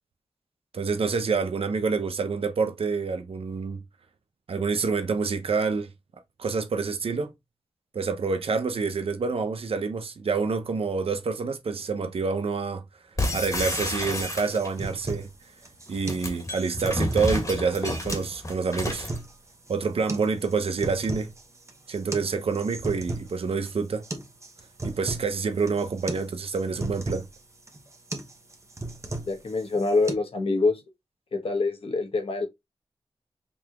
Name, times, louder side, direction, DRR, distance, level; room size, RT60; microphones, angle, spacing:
voice 1, 0.7-3.8 4.5-5.9 6.4-7.3 7.9-12.8 13.3-15.3 15.9-19.1 19.7-21.3 21.9-24.0 24.8-27.3, right 4 dB, 75° right, 0.8 m, -27 dB
sound 1, 13.2-14.9 15.9-19.2, left 1 dB, 35° left, 1.8 m, -30 dB
sound 2, 14.1-30.1, right 2 dB, 30° right, 1.0 m, -37 dB
voice 2, 29.3-30.8 31.3-32.5, left 3 dB, 70° left, 1.2 m, -25 dB
5.4 x 2.9 x 2.4 m
cardioid pair, 60°, 10 cm